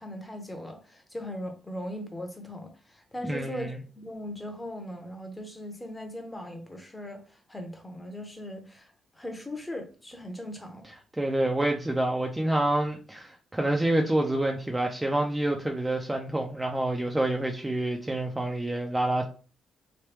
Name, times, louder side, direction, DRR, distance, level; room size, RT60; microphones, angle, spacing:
voice 1, 0.0-3.7 3.9-10.9, left 1 dB, 15° left, 0.8 m, -39 dB
voice 2, 3.2-3.8 11.2-19.2, right 1 dB, 15° right, 0.5 m, -27 dB
3.1 x 2.2 x 3.2 m
cardioid pair, 75°, 0 cm